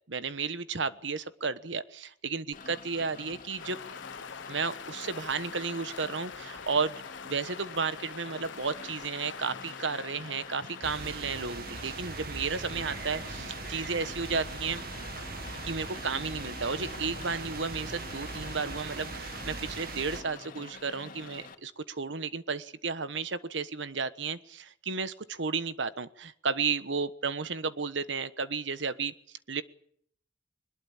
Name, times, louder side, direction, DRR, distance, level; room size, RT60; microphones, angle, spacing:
voice 1, 0.1-3.8 4.5-14.8 15.5-29.1 29.5-29.6, right 5 dB, 75° right, 14 dB, 1.2 m, -33 dB
Rain, 2.5-21.5, left 4 dB, 50° left, 2.4 m, -47 dB
sound 1, 3.6-12.0, left 6 dB, 80° left, 0.9 m, -45 dB
sound 2, 10.8-20.2, right 3 dB, 55° right, 1.9 m, -40 dB
22.0 x 20.5 x 7.3 m, 0.67 s
head